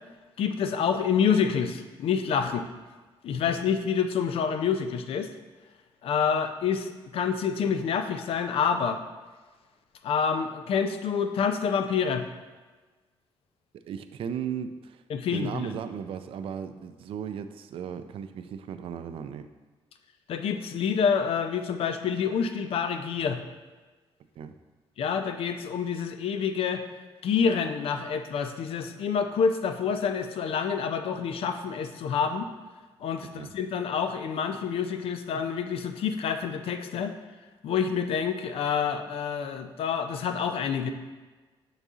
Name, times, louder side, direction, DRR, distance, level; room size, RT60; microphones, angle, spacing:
voice 1, 0.4-2.7 3.2-5.3 6.0-9.0 10.0-12.3 15.1-15.7 20.3-23.4 25.0-26.8 27.2-32.5 33.0-37.1 37.6-40.9, left 6 dB, 65° left, 7 dB, 0.4 m, -27 dB
voice 2, 13.7-15.0 15.3-19.5 24.4-24.5 33.4-33.5, right 8 dB, 65° right, 10 dB, 0.4 m, -36 dB
6.9 x 4.0 x 3.6 m, 1.3 s
wide cardioid pair, 170°, 10 cm